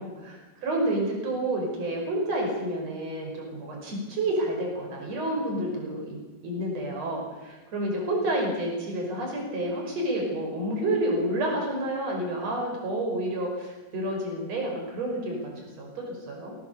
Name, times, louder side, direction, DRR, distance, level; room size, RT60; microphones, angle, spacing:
voice 1, 0.0-6.2 6.4-16.6, right 1 dB, 50° right, 0 dB, 6.4 m, -29 dB
24.0 x 17.5 x 7.0 m, 1.2 s
omnidirectional pair, 3.8 m